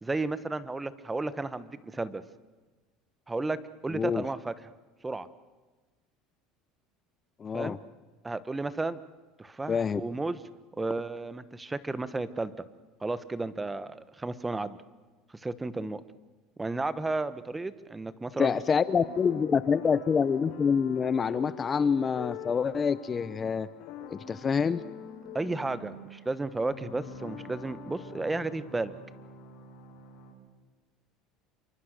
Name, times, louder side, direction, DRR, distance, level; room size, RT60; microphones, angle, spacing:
voice 1, 0.0-2.2 3.3-4.5 5.0-5.3 7.5-7.8 8.2-9.0 9.4-10.4 10.8-12.5 13.0-14.8 15.3-16.0 16.6-18.6 25.3-28.9, right 3 dB, 10° right, 15 dB, 1.2 m, -33 dB
voice 2, 3.9-4.2 7.4-7.8 9.7-10.0 18.3-23.7 24.1-24.8, left 6 dB, 25° left, 16 dB, 0.8 m, -26 dB
sound 1, 18.7-30.3, left 5 dB, 70° left, 7.9 m, -45 dB
28.0 x 24.0 x 6.6 m, 1.3 s
supercardioid pair, 120°, 0 cm